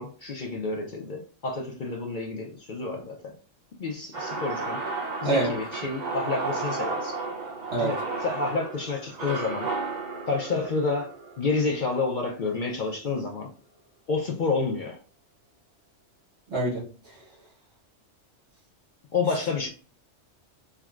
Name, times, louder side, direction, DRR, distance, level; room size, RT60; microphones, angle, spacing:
voice 1, 0.0-3.3 3.8-4.9 5.2-7.2 7.8-8.0 8.2-9.7 10.3-13.5 14.1-15.0 19.1-19.7, left 4 dB, 60° left, 0.5 m, -29 dB
sound 1, 4.1-12.3, right 3 dB, 40° right, 0.9 m, -33 dB
voice 2, 5.2-5.6 7.7-8.0 16.5-17.3 19.3-19.4, right 2 dB, 65° right, 1.6 m, -27 dB
4.7 x 2.1 x 2.3 m
omnidirectional pair, 1.3 m